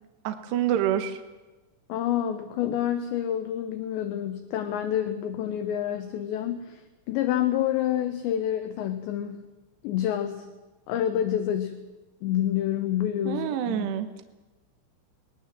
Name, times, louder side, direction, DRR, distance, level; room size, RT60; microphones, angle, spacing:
voice 1, 0.2-1.2 13.3-14.2, right 10 dB, 70° right, 9 dB, 2.7 m, -27 dB
voice 2, 1.9-6.8 7.1-9.4 9.8-10.5 10.9-11.7 12.2-13.9, left 11 dB, 75° left, 8 dB, 2.9 m, -28 dB
22.0 x 20.5 x 7.5 m, 1.2 s
omnidirectional pair, 6.0 m